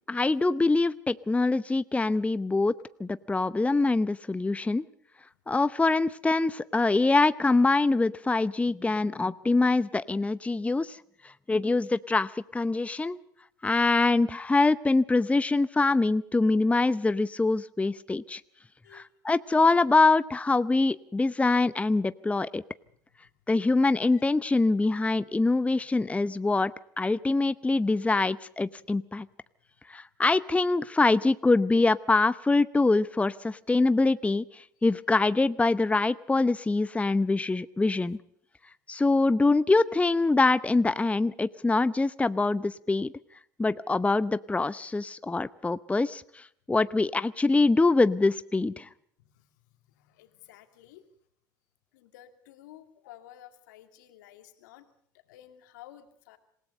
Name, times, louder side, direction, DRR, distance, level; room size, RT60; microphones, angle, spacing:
voice 1, 0.1-2.7 3.0-4.9 5.5-13.2 13.6-18.4 18.9-22.6 23.5-26.7 27.0-29.3 29.9-38.2 38.9-43.1 43.6-48.9, left 3 dB, 15° left, 16 dB, 0.8 m, -24 dB
voice 2, 49.2-51.0 51.9-54.9 55.3-56.4, left 12 dB, 75° left, 8 dB, 2.4 m, -53 dB
27.5 x 17.5 x 5.5 m, 0.68 s
hypercardioid pair, 65°, 10 cm